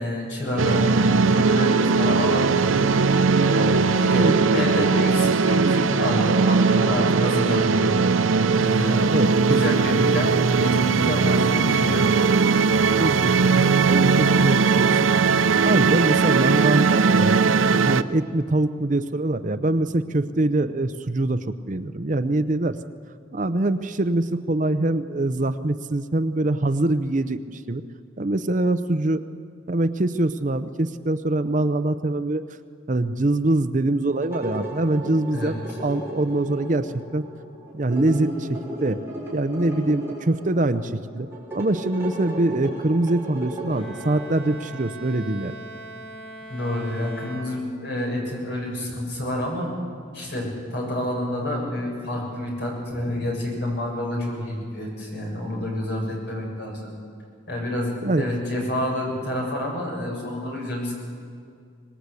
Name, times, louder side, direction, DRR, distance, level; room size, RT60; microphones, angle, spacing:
voice 1, 0.0-2.9 3.4-8.0 8.5-9.1 9.4-12.1 35.3-35.6 46.5-49.7 50.1-56.8 57.5-60.9, left 1 dB, 55° left, -1 dB, 7.5 m, -28 dB
sound 1, 0.6-18.0, right 4 dB, 80° right, 0.7 m, -19 dB
voice 2, 4.2-4.9 9.1-9.6 13.0-15.1 15.6-17.4 17.8-22.8 23.3-27.8 28.2-29.2 29.7-32.4 32.9-37.2 37.7-39.0 39.3-41.3 41.5-45.6 58.0-58.3, right 2 dB, 40° right, 11 dB, 0.7 m, -24 dB
sound 2, 34.1-44.9, right 1 dB, 10° right, 5.7 m, -36 dB
Bowed string instrument, 43.7-48.1, right 2 dB, 30° left, 3.8 m, -41 dB
25.0 x 20.0 x 8.3 m, 2.3 s
head